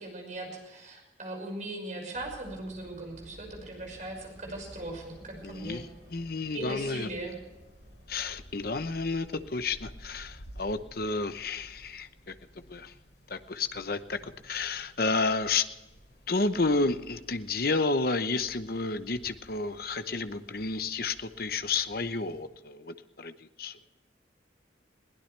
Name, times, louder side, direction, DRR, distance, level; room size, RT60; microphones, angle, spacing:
voice 1, 0.0-5.8 6.5-7.3, right 2 dB, 40° right, 2 dB, 5.9 m, -39 dB
sound 1, 2.1-12.0, right 1 dB, 65° right, 3.5 m, -54 dB
sound 2, 3.7-22.4, equal, 70° left, 7.2 m, -55 dB
voice 2, 5.4-7.1 8.1-12.3 12.7-12.9 13.3-15.7 16.3-23.8, left 3 dB, 55° left, 10 dB, 0.9 m, -31 dB
22.0 x 16.5 x 3.4 m, 1.1 s
head